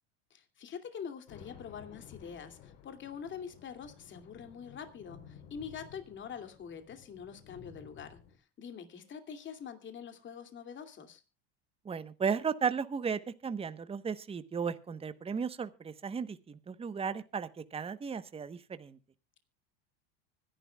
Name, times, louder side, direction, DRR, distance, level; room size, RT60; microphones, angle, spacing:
voice 1, 0.3-11.2, left 7 dB, 35° left, 8 dB, 2.6 m, -45 dB
sound 1, 1.3-8.4, left 7 dB, 70° left, 3.6 m, -54 dB
voice 2, 11.8-19.0, right 6 dB, 15° right, 12 dB, 1.0 m, -35 dB
25.0 x 11.5 x 2.3 m, 0.29 s
supercardioid pair, 115°, 33 cm